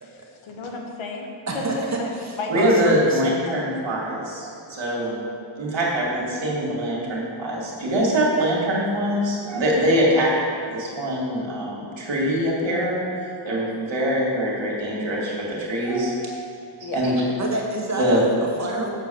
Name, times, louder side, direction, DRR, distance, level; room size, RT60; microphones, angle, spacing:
voice 1, 0.0-1.3 1.5-1.6 2.0-2.5 3.5-3.6 16.8-17.0, left 3 dB, 80° left, 1 dB, 1.3 m, -33 dB
voice 2, 1.5-3.2 17.4-18.9, right 2 dB, 35° right, -2 dB, 1.6 m, -28 dB
voice 3, 2.5-5.3 5.5-10.3 10.7-16.5 16.8-17.1 18.0-18.2 18.8-18.9, equal, 65° right, -4 dB, 2.4 m, -23 dB
7.8 x 4.6 x 7.1 m, 2.3 s
cardioid pair, 90°, 48 cm